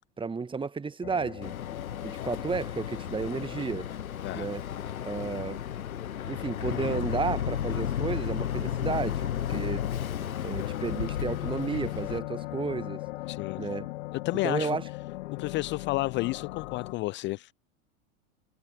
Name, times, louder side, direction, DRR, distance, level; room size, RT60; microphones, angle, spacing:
voice 1, 0.2-1.5 2.0-3.9 4.3-4.6 5.0-5.6 6.2-9.9 10.4-13.0 13.6-13.9 14.4-14.8, right 4 dB, 10° right, 1.5 m, -32 dB
sound 1, 1.0-16.9, left 18 dB, 55° left, 1.9 m, -41 dB
Boat Water vehicle, 1.4-12.2, left 9 dB, 75° left, 1.2 m, -33 dB
voice 2, 13.3-13.7 14.1-14.8 15.3-17.5, left 20 dB, 25° left, 0.5 m, -31 dB
figure-of-eight pair, 85°, 43 cm